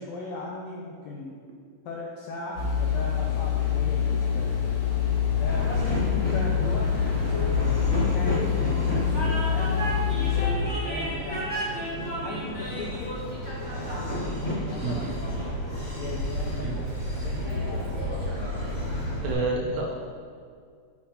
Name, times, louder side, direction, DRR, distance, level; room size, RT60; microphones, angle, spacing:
voice 1, 0.0-1.4 1.8-4.6 5.3-13.2 14.1-15.6 15.9-17.9, left 2 dB, 85° left, -2 dB, 1.5 m, -38 dB
sound 1, 2.6-10.5, left 9 dB, 70° left, 2.6 m, -26 dB
Train, 5.4-19.3, equal, 30° left, 0.7 m, -31 dB
voice 2, 19.2-19.9, right 3 dB, 75° right, -2 dB, 1.8 m, -29 dB
7.4 x 6.4 x 2.8 m, 2.1 s
omnidirectional pair, 3.7 m